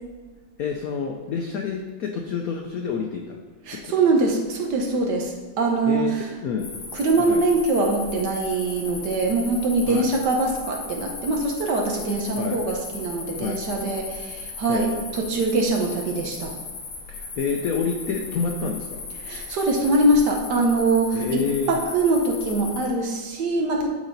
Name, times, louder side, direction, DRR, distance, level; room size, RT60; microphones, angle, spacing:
voice 1, 0.6-3.4 3.7-3.9 5.8-6.7 7.2-7.4 9.9-10.1 12.4-12.6 13.4-13.6 14.7-14.9 17.1-19.0 21.1-21.8, left 5 dB, 80° left, 3 dB, 0.8 m, -28 dB
voice 2, 3.7-6.1 6.9-16.5 19.2-23.9, right 2 dB, 60° right, 1 dB, 1.3 m, -23 dB
sound 1, 6.6-22.9, left 4 dB, 55° left, 1.7 m, -37 dB
12.0 x 4.1 x 4.0 m, 1.3 s
omnidirectional pair, 2.3 m